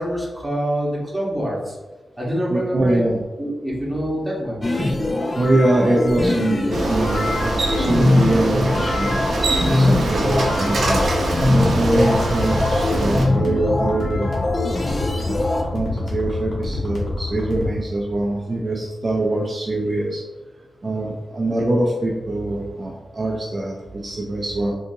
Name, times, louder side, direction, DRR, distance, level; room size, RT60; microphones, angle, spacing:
voice 1, 0.0-1.8 2.2-3.0 3.4-4.7, equal, 5° right, -5 dB, 1.1 m, -25 dB
voice 2, 2.5-3.2 5.4-6.6 6.9-9.2 9.7-14.4 15.2-15.4 15.7-20.2 20.8-24.7, right 1 dB, 35° right, -3 dB, 0.4 m, -23 dB
sound 1, 4.6-15.6, left 2 dB, 30° left, 0.4 m, -22 dB
Bicycle, 6.7-13.3, right 1 dB, 75° right, 0.6 m, -24 dB
sound 2, 10.7-17.7, left 2 dB, 75° left, 1.0 m, -27 dB
3.8 x 2.7 x 2.6 m, 1.1 s
wide cardioid pair, 100°, 0 cm